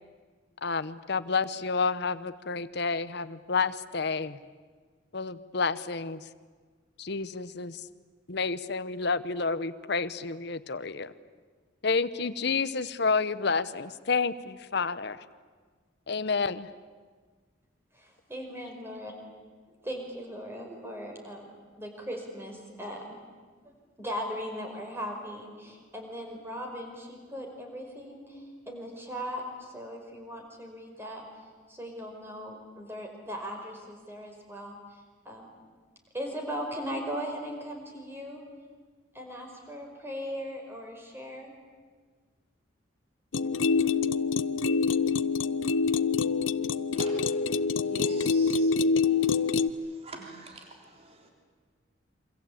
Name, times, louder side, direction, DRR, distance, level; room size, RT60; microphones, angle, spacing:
voice 1, 0.6-4.4 5.1-6.2 7.0-7.8 8.3-11.1 11.8-15.2 16.1-16.7, left 4 dB, 60° left, 13 dB, 0.9 m, -30 dB
voice 2, 17.9-19.1 19.7-21.4 21.8-23.0 23.6-31.2 31.7-35.0 35.3-35.5 36.1-38.4 39.1-41.5, equal, 10° right, 2 dB, 5.1 m, -38 dB
sound 1, 43.3-49.7, left 5 dB, 80° left, 0.7 m, -26 dB
voice 3, 46.9-47.2 47.8-48.7 49.2-49.3 50.0-50.7 51.0-51.3, right 2 dB, 30° right, 2 dB, 3.6 m, -44 dB
27.5 x 25.0 x 8.6 m, 1.5 s
head